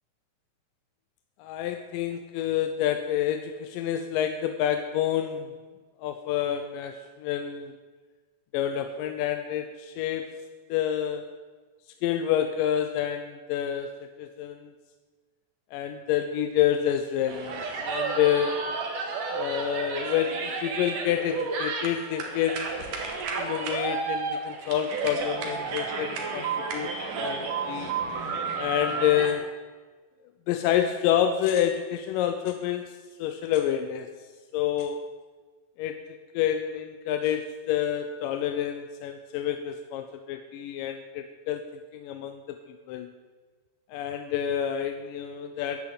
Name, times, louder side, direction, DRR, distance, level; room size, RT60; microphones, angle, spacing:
voice 1, 1.4-5.5 6.0-7.8 8.5-11.2 12.0-14.7 15.7-18.6 19.3-22.7 23.4-26.9 27.2-27.9 28.6-29.5 30.5-32.9 33.2-34.1 34.5-35.0 35.8-36.1 36.3-41.6 41.9-42.6 42.9-43.1 43.9-45.8, left 10 dB, 90° left, 7 dB, 2.4 m, -28 dB
sound 1, 17.3-29.3, right 4 dB, 75° right, 3.3 m, -32 dB
11.0 x 10.5 x 7.6 m, 1.4 s
omnidirectional pair, 3.8 m